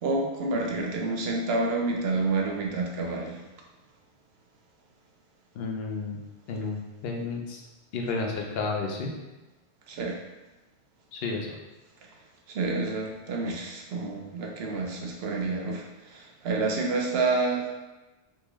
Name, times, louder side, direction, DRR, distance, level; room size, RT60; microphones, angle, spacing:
voice 1, 0.0-3.4 9.9-10.2 12.5-17.7, right 3 dB, 75° right, 0 dB, 0.9 m, -29 dB
voice 2, 5.5-6.2 6.5-7.6 7.9-9.1 11.1-11.6, left 3 dB, 70° left, 0 dB, 0.8 m, -31 dB
3.6 x 2.7 x 3.0 m, 1.1 s
omnidirectional pair, 1.1 m